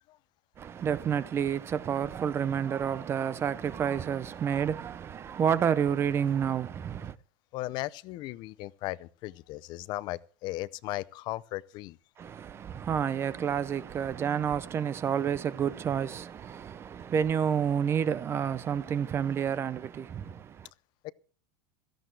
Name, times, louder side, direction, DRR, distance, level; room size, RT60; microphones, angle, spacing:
voice 1, 0.6-7.2 12.2-20.7, right 8 dB, 20° right, 0.6 m, -29 dB
voice 2, 7.5-12.0 21.0-21.1, left 17 dB, 35° left, 0.6 m, -37 dB
17.0 x 15.0 x 3.3 m
supercardioid pair, 160°, 13 cm